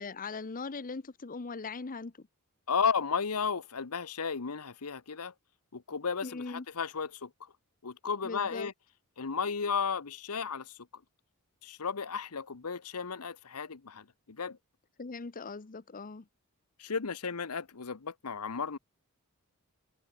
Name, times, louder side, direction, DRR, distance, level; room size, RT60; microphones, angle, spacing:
voice 1, 0.0-2.3 6.2-6.6 8.2-8.7 15.0-16.3, left 4 dB, 40° left, 0.8 m, -40 dB
voice 2, 2.7-5.3 5.7-7.5 7.8-8.7 9.2-10.8 11.6-14.6 16.8-18.8, left 5 dB, 80° left, 1.0 m, -34 dB
head